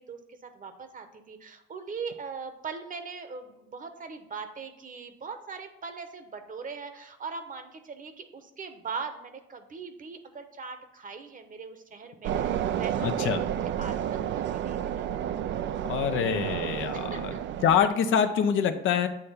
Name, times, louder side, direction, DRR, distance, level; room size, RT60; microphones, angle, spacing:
voice 1, 0.0-14.0 14.3-15.1 16.9-17.2, right 5 dB, 40° right, 8 dB, 1.0 m, -40 dB
sound 1, 12.2-17.9, right 10 dB, 70° right, 0.4 m, -31 dB
voice 2, 13.0-13.4 15.8-17.3 17.6-19.1, left 8 dB, 80° left, 8 dB, 0.7 m, -25 dB
8.5 x 3.3 x 5.6 m, 0.86 s
cardioid pair, 90°, 20 cm